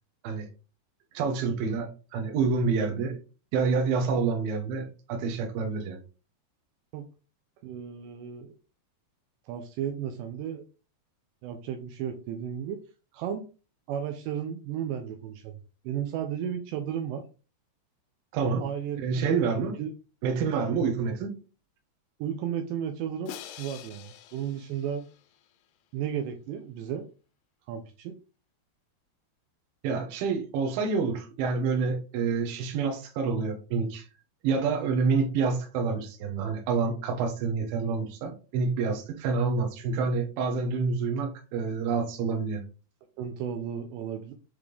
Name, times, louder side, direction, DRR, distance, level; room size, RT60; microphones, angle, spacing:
voice 1, 1.1-3.2 3.5-6.0 18.3-18.7 19.0-19.7 20.2-21.3 29.8-34.1 34.4-42.6, right 5 dB, 70° right, 2.2 m, -28 dB
voice 2, 7.6-8.5 9.5-10.6 11.4-12.8 13.1-13.5 13.9-15.6 15.8-17.2 18.6-19.3 19.6-19.9 22.2-25.1 25.9-27.1 27.7-28.1 43.2-44.3, right 9 dB, 85° right, 2.5 m, -34 dB
Crash cymbal, 23.3-25.5, left 11 dB, 85° left, 2.5 m, -45 dB
7.8 x 3.6 x 3.3 m
omnidirectional pair, 5.8 m